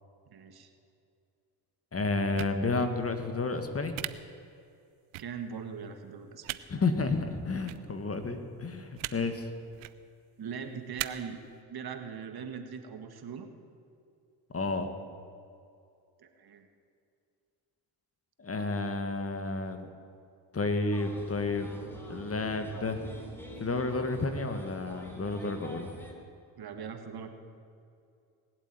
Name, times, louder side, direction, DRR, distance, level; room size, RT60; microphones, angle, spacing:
voice 1, 0.3-0.7 5.2-6.6 10.4-11.4 11.7-13.5 16.2-16.7 26.6-27.3, right 6 dB, 50° right, 7 dB, 1.7 m, -40 dB
voice 2, 1.9-3.9 6.7-9.5 14.5-14.9 18.4-19.9 20.5-21.7 22.1-23.0 23.6-25.9, left 3 dB, 30° left, 8 dB, 1.7 m, -31 dB
sound 1, 2.4-2.5 3.9-4.1 5.1-5.2 6.4-6.6 7.6-7.8 9.0-9.1 9.7-9.9 11.0-11.1, right 20 dB, 85° right, 0.7 m, -36 dB
sound 2, 20.7-25.6, left 2 dB, 50° left, 3.4 m, -50 dB
sound 3, 20.9-26.1, equal, 5° left, 3.4 m, -48 dB
20.0 x 8.1 x 9.0 m, 2.5 s
supercardioid pair, 75°, 46 cm